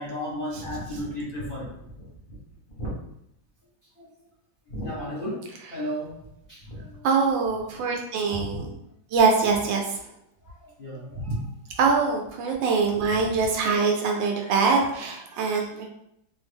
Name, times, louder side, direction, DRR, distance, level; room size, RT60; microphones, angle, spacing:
voice 1, 0.0-1.7 2.0-2.1 2.8-2.9 4.0-4.1 4.7-6.2 6.5-7.1 10.4-11.4 15.3-15.5, equal, 40° left, -8 dB, 0.7 m, -34 dB
voice 2, 7.0-8.7 9.1-10.0 11.3-11.4 11.8-15.9, right 4 dB, 75° right, 1 dB, 1.3 m, -23 dB
3.4 x 2.0 x 3.3 m, 0.75 s
omnidirectional pair, 2.1 m